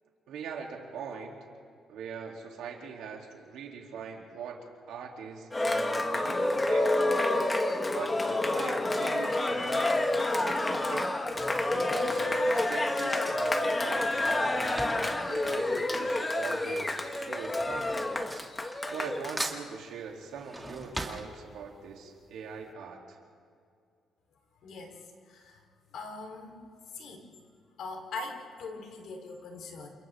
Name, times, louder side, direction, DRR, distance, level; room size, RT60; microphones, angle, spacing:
voice 1, 0.3-1.4 1.9-4.6 4.9-7.0 7.9-9.9 10.3-11.1 11.7-18.0 18.8-23.2, right 6 dB, 85° right, 0 dB, 3.1 m, -42 dB
Cheering, 5.5-19.4, left 2 dB, 20° left, 1.4 m, -28 dB
Drawer open or close / Cutlery silverware, 10.6-16.5 16.7-19.1 19.4-21.9 22.3-22.4 22.6-22.7, right 1 dB, 10° right, 2.2 m, -42 dB
voice 2, 24.6-25.6 25.9-26.5 26.9-27.3 27.8-29.9, left 3 dB, 75° left, 2 dB, 3.7 m, -41 dB
28.5 x 28.5 x 3.7 m, 2.2 s
cardioid pair, 90°, 0 cm